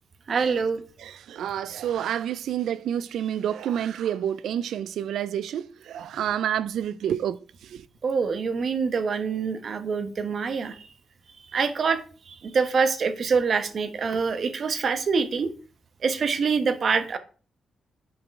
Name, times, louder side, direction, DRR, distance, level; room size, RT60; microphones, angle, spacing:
voice 1, 0.3-0.8 8.0-10.9 11.5-12.0 12.3-15.5 16.0-17.2, right 5 dB, 50° right, 1.1 m, -25 dB
voice 2, 1.0-7.9, right 10 dB, 80° right, 0.4 m, -29 dB
8.4 x 5.2 x 4.6 m
cardioid pair, 95°, 0 cm